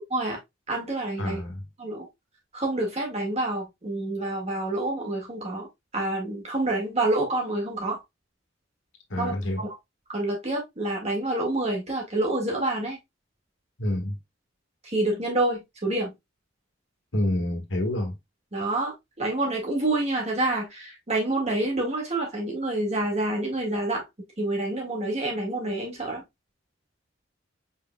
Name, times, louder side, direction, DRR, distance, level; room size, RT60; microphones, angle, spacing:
voice 1, 0.7-1.4 1.8-2.1 2.5-5.7 5.9-8.0 9.2-9.7 10.1-13.0 14.8-16.1 18.5-24.1 24.4-26.2, right 2 dB, 35° right, 1.9 m, -27 dB
voice 2, 1.2-1.7 9.1-9.6 13.8-14.2 17.1-18.1, left 1 dB, 90° left, 1.4 m, -28 dB
4.9 x 4.0 x 2.2 m
head